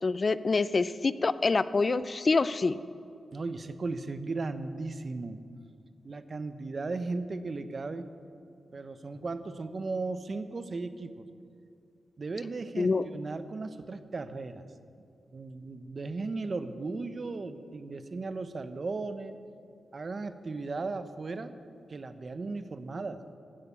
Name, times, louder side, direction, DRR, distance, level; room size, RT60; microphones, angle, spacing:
voice 1, 0.0-2.8 12.8-13.0, left 3 dB, 45° left, 15 dB, 0.4 m, -26 dB
voice 2, 3.3-5.4 6.0-8.1 8.7-11.3 12.2-14.7 15.3-19.4 19.9-21.5 21.9-23.2, right 3 dB, 50° right, 11 dB, 0.8 m, -36 dB
15.0 x 6.8 x 8.6 m, 2.5 s
cardioid pair, 55°, 0 cm